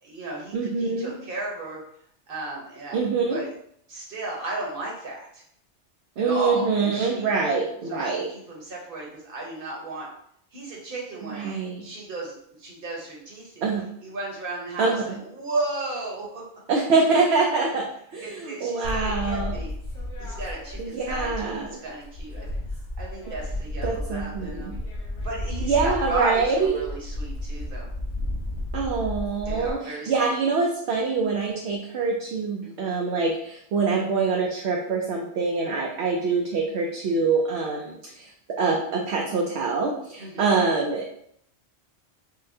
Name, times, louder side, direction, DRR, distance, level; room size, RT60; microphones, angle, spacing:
voice 1, 0.0-1.8 2.3-3.0 3.3-3.5 3.9-5.4 6.2-7.3 7.9-8.1 8.5-10.1 10.5-11.5 11.8-13.7 14.0-16.4 18.2-19.7 20.2-22.5 23.0-24.8 25.2-27.9 29.4-30.1 32.6-32.9 40.2-40.5, right 2 dB, 50° right, -3 dB, 1.2 m, -34 dB
voice 2, 0.5-1.1 2.9-3.4 6.2-8.3 11.2-11.8 13.6-13.8 14.8-15.2 16.7-17.9 18.1-19.5 20.8-21.8 23.8-24.7 25.6-26.8 28.7-38.3 38.6-41.2, right 4 dB, 70° right, -1 dB, 0.8 m, -25 dB
sound 1, 18.8-21.7 22.0-29.7, left 1 dB, 85° left, 1.5 m, -33 dB
5.5 x 2.2 x 2.7 m, 0.69 s
omnidirectional pair, 1.2 m